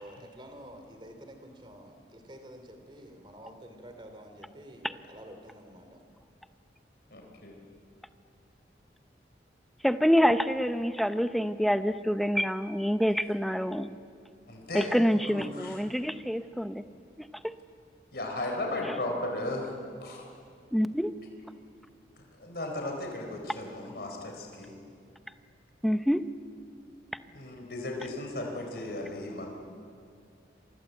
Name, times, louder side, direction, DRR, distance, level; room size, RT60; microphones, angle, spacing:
voice 1, 0.0-6.0, equal, 25° right, 6 dB, 3.0 m, -49 dB
voice 2, 7.1-7.6 14.5-15.0 15.3-15.8 16.3-16.4 18.1-19.7 20.0-20.2 22.2-24.8 27.3-29.5, left 2 dB, 60° left, 1 dB, 4.1 m, -36 dB
voice 3, 9.8-13.9 14.7-16.8 18.8-18.9 20.7-21.1 25.8-26.2, equal, ahead, 10 dB, 0.7 m, -26 dB
28.5 x 24.0 x 8.2 m, 2.4 s
head